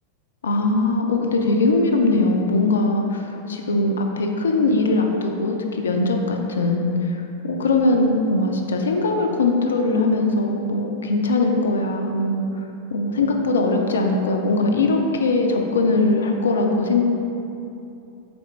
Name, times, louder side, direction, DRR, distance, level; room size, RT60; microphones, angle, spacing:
voice 1, 0.4-7.2 7.4-12.4 12.9-17.0, left 2 dB, 65° left, 2 dB, 0.4 m, -21 dB
4.2 x 3.4 x 3.2 m, 2.7 s
figure-of-eight pair, 90°, 0 cm